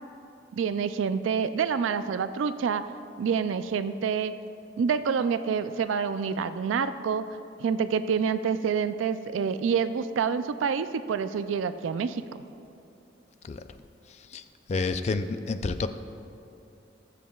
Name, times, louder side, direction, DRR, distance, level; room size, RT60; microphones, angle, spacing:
voice 1, 0.5-2.8 3.2-4.3 4.8-7.3 7.6-12.2, right 6 dB, 90° right, 12 dB, 0.3 m, -27 dB
voice 2, 14.7-15.9, left 3 dB, 35° left, 10 dB, 0.3 m, -29 dB
18.5 x 7.4 x 2.3 m, 2.7 s
head